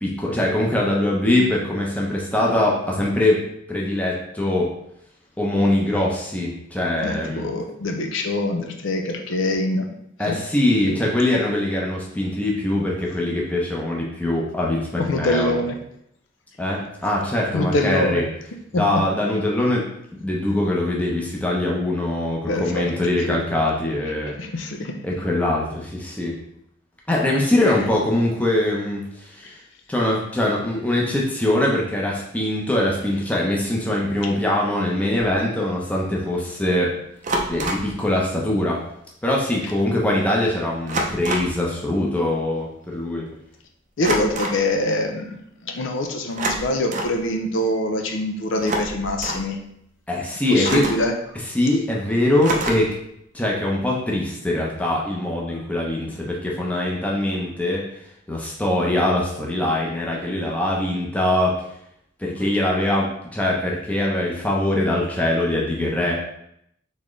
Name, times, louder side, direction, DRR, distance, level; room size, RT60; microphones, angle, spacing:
voice 1, 0.0-3.4 3.7-4.7 5.4-7.5 10.2-15.5 16.6-18.2 18.7-19.9 20.1-24.4 25.0-26.4 27.1-29.6 29.9-36.9 37.5-38.8 39.2-43.3 50.1-50.9 51.5-52.9 53.3-57.8 58.3-61.6 62.2-66.1, left 1 dB, 5° left, -3 dB, 0.7 m, -22 dB
voice 2, 7.0-9.9 10.2-10.4 10.9-11.0 15.0-15.8 17.5-18.2 18.7-18.8 22.5-22.9 23.3-23.4 24.4-25.0 29.4-29.6 44.0-49.6 50.5-51.1, left 1 dB, 70° left, 3 dB, 0.5 m, -24 dB
sound 1, 35.2-35.3 37.2-37.9 39.3-39.4 39.7-39.9 40.9-41.6 44.0-44.6 46.3-47.2 48.5-49.5 50.6-51.1 52.4-53.0, right 1 dB, 35° right, 0.5 m, -27 dB
4.2 x 3.5 x 3.2 m, 0.75 s
head